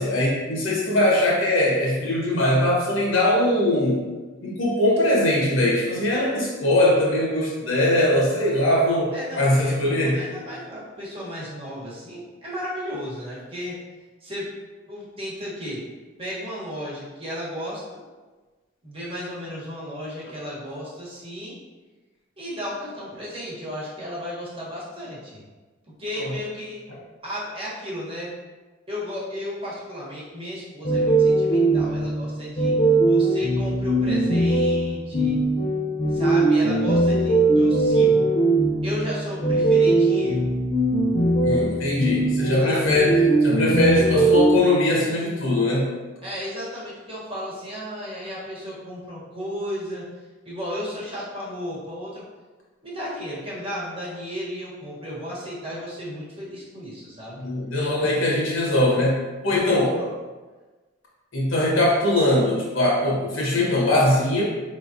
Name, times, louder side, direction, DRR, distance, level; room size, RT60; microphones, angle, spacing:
voice 1, 0.0-4.0 4.4-10.2 26.2-26.3 41.4-43.1 43.4-45.9 57.4-60.0 61.3-64.4, left 1 dB, 80° left, -4 dB, 1.3 m, -21 dB
voice 2, 9.1-13.8 14.2-14.5 14.9-15.8 16.2-18.0 18.8-21.6 22.4-25.4 26.0-26.8 27.2-28.3 28.9-35.4 36.1-38.3 38.8-40.5 42.6-43.0 46.2-50.1 50.4-52.2 52.8-57.4 57.8-58.1 59.4-60.1, equal, 25° right, -7 dB, 1.2 m, -34 dB
sound 1, 30.8-44.6, right 2 dB, 30° left, 0.5 m, -20 dB
4.7 x 3.3 x 2.7 m, 1.3 s
head